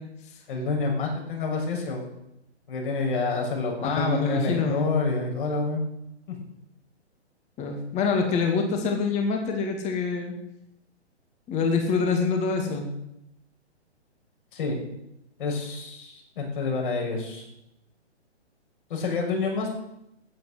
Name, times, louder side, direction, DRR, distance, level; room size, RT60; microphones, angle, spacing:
voice 1, 0.5-2.0 2.7-5.8 6.3-6.4 14.5-14.8 15.4-17.5 18.9-19.7, left 4 dB, 50° left, 0 dB, 6.2 m, -28 dB
voice 2, 3.8-4.9 7.6-10.4 11.5-12.9, left 4 dB, 20° left, 4 dB, 2.3 m, -25 dB
15.0 x 9.7 x 7.8 m, 0.83 s
figure-of-eight pair, 125°, 34 cm